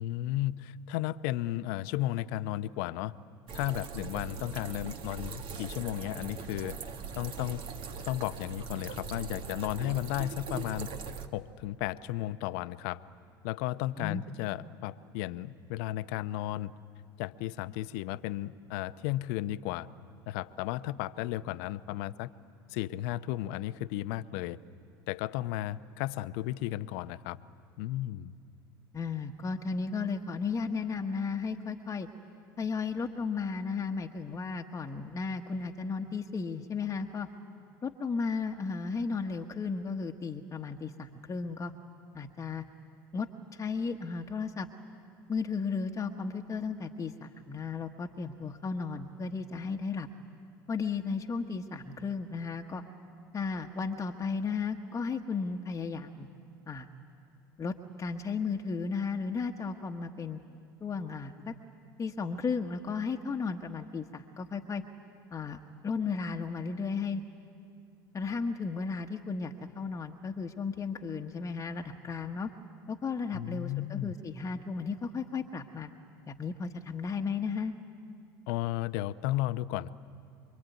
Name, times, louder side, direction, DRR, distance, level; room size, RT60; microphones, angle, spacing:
voice 1, 0.0-3.1 3.5-6.8 7.2-7.6 8.0-10.9 11.3-13.0 13.4-16.7 17.2-19.9 20.3-22.3 22.7-24.6 25.1-27.4 27.8-28.3 73.3-74.1 78.5-79.9, left 15 dB, 65° left, 13 dB, 0.8 m, -34 dB
sound 1, 3.5-11.3, right 5 dB, 50° right, 1.8 m, -41 dB
voice 2, 28.9-32.1 32.6-37.3 37.8-41.7 42.1-42.6 43.1-44.7 45.3-50.1 50.7-52.8 53.3-56.3 56.7-56.9 57.6-60.4 60.8-61.5 62.0-64.8 65.3-67.2 68.1-72.5 72.9-75.9 76.3-77.7, left 5 dB, 25° left, 3 dB, 1.3 m, -34 dB
26.5 x 23.5 x 9.3 m, 2.4 s
hypercardioid pair, 80°, 12 cm